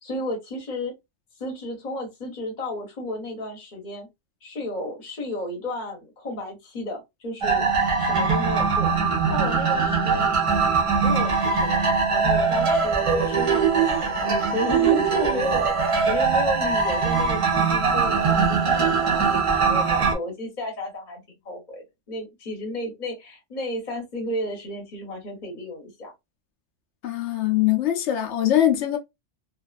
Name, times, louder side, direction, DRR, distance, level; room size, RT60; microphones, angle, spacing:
voice 1, 0.0-0.9 1.4-4.1 4.4-7.7 8.0-8.9 9.3-10.3 11.0-26.1, left 1 dB, 40° left, 0.9 m, -33 dB
sound 1, 7.4-20.1, right 5 dB, 35° right, 0.6 m, -21 dB
voice 2, 27.0-29.0, left 12 dB, 70° left, 0.8 m, -22 dB
2.5 x 2.4 x 2.3 m
omnidirectional pair, 1.3 m